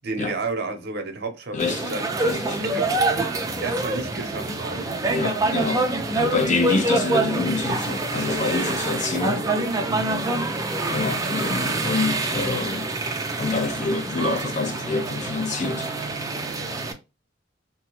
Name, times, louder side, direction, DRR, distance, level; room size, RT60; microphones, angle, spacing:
voice 1, 0.0-2.1 2.7-2.9 3.2-3.3 3.6-4.9 9.8-10.1, right 3 dB, 55° right, 0.7 m, -31 dB
voice 2, 1.5-1.9 2.2-2.6 5.1-5.9 6.2-9.5 10.8-12.9 13.4-15.9, left 3 dB, 40° left, 0.4 m, -26 dB
sound 1, 1.6-16.9, right 2 dB, 20° right, 0.4 m, -26 dB
2.8 x 2.2 x 3.0 m
head